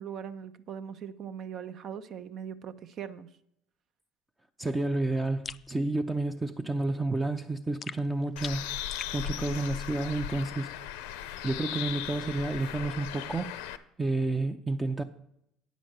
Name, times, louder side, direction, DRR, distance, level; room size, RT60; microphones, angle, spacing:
voice 1, 0.0-3.3, right 8 dB, 55° right, 0.7 m, -40 dB
voice 2, 4.6-8.7 9.1-10.7 11.4-13.5 14.0-15.0, right 2 dB, 15° right, 0.6 m, -30 dB
sound 1, 5.4-5.7 7.8-9.2, left 6 dB, 35° left, 0.3 m, -42 dB
Bird, 8.4-13.8, left 11 dB, 80° left, 0.6 m, -37 dB
9.2 x 5.2 x 7.7 m
supercardioid pair, 80°, 0 cm